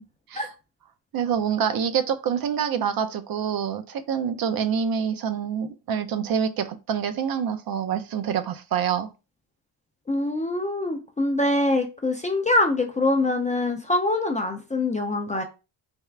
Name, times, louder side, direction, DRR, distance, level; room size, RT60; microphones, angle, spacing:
voice 1, 1.1-9.1, right 7 dB, 55° right, 0.5 m, -26 dB
voice 2, 10.1-15.4, left 2 dB, 20° left, 0.3 m, -24 dB
3.4 x 2.3 x 3.2 m
cardioid pair, 130°, 44 cm